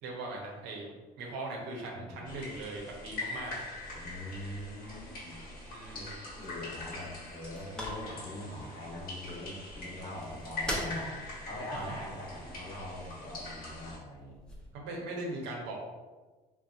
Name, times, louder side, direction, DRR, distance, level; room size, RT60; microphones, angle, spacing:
voice 1, 0.0-3.6 5.7-6.2 11.7-11.9 14.7-15.8, right 2 dB, 85° right, -1 dB, 0.7 m, -40 dB
voice 2, 1.9-2.2 3.9-5.4 5.9-6.1 6.4-14.3, left 1 dB, 30° left, -7 dB, 1.1 m, -42 dB
sound 1, 2.2-14.0, left 2 dB, 60° left, 1.1 m, -43 dB
sound 2, 4.7-14.7, equal, 5° left, 0.6 m, -46 dB
2.7 x 2.2 x 2.4 m, 1.3 s
supercardioid pair, 85°, 17 cm